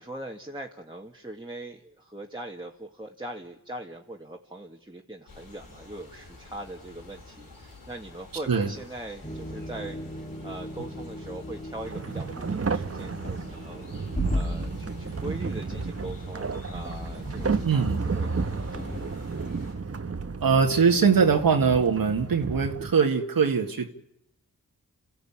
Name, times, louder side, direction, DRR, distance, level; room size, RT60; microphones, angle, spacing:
voice 1, 0.0-19.0, right 1 dB, 15° right, -1 dB, 2.3 m, -41 dB
sound 1, 5.3-19.7, left 3 dB, 70° left, 5.8 m, -48 dB
sound 2, 9.2-20.8 21.0-21.3, left 1 dB, 20° left, 3.1 m, -38 dB
sound 3, 11.8-22.9, right 4 dB, 40° right, 1.3 m, -32 dB
voice 2, 17.6-18.0 20.4-23.9, right 6 dB, 70° right, 3 dB, 2.0 m, -22 dB
28.0 x 14.5 x 8.9 m, 0.79 s
cardioid pair, 45°, 35 cm